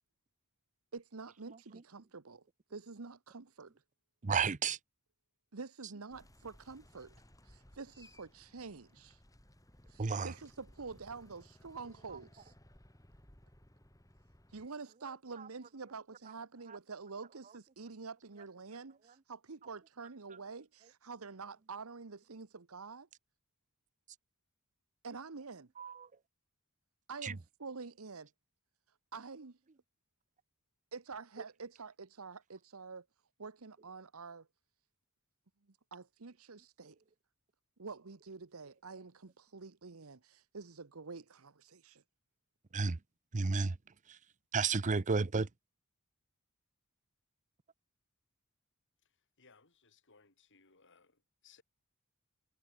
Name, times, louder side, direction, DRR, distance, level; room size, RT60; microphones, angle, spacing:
voice 1, 0.9-2.4 2.7-3.7 5.5-7.1 7.4-9.2 9.9-12.5 14.5-23.1 25.0-25.7 27.1-28.3 29.1-29.6 30.9-33.0 33.4-34.5 35.7-37.0 37.8-42.0, right 4 dB, 70° right, 1.0 m, -47 dB
voice 2, 4.2-4.8 10.0-10.3 25.8-25.9 27.2-27.3 42.7-43.0 43.3-43.7 44.5-45.5, right 4 dB, 35° right, 0.6 m, -31 dB
sound 1, 6.1-14.7, left 1 dB, 15° left, 4.0 m, -61 dB
voice 3, 49.4-51.2 51.4-51.6, left 5 dB, 60° left, 6.0 m, -64 dB
head